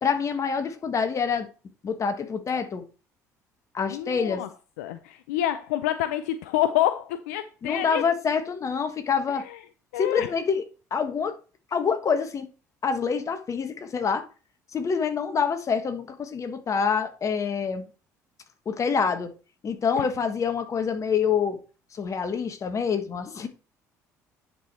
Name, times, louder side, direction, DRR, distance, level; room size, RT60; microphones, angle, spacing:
voice 1, 0.0-1.5 1.8-2.8 3.7-4.4 7.6-9.4 9.9-10.6 10.9-11.4 11.7-12.5 12.8-14.2 14.7-17.8 18.6-19.3 19.6-21.6 21.9-23.5, left 6 dB, 35° left, 1.4 m, -26 dB
voice 2, 3.9-4.5 4.8-8.0 9.9-10.3 20.0-20.1, left 13 dB, 70° left, 0.5 m, -27 dB
9.9 x 4.8 x 4.3 m
figure-of-eight pair, 55°, 9 cm